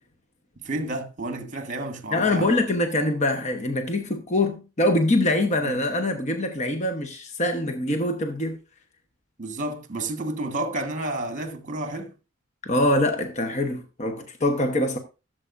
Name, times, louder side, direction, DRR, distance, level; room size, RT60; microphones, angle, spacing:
voice 1, 0.6-2.5 5.6-5.8 9.4-12.1, right 2 dB, 35° right, 1.3 m, -31 dB
voice 2, 2.1-8.6 12.6-15.0, left 1 dB, 30° left, 0.9 m, -24 dB
15.5 x 7.5 x 2.5 m
head